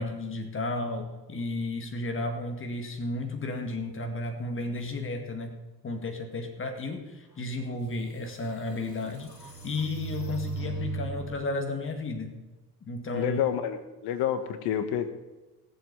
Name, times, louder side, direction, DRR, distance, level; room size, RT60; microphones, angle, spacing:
voice 1, 0.0-5.6 5.8-12.4 12.9-13.4, left 2 dB, 25° left, 5 dB, 2.1 m, -33 dB
sound 1, 7.6-7.7 8.2-11.4, right 6 dB, 90° left, 1.6 m, -38 dB
voice 2, 13.1-15.1, left 9 dB, 55° left, 10 dB, 1.6 m, -29 dB
18.0 x 7.6 x 5.5 m, 1.1 s
figure-of-eight pair, 60°, 48 cm